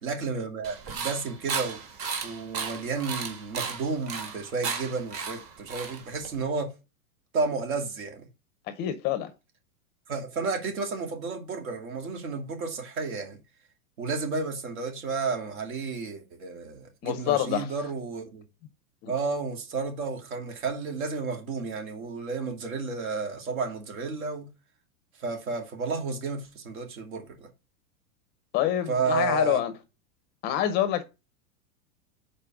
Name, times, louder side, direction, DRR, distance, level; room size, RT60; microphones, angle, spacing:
voice 1, 0.0-1.8 2.2-6.7 7.3-8.2 10.1-13.4 14.0-18.4 19.1-24.5 25.2-27.5 28.9-29.6, right 4 dB, 75° right, 2.7 m, -32 dB
sound 1, 0.6-6.4, right 5 dB, 30° right, 1.5 m, -35 dB
voice 2, 8.7-9.3 17.0-17.7 19.0-19.1 28.5-29.7 30.4-31.0, left 12 dB, 25° left, 0.5 m, -26 dB
5.0 x 4.2 x 5.8 m
supercardioid pair, 145°, 42 cm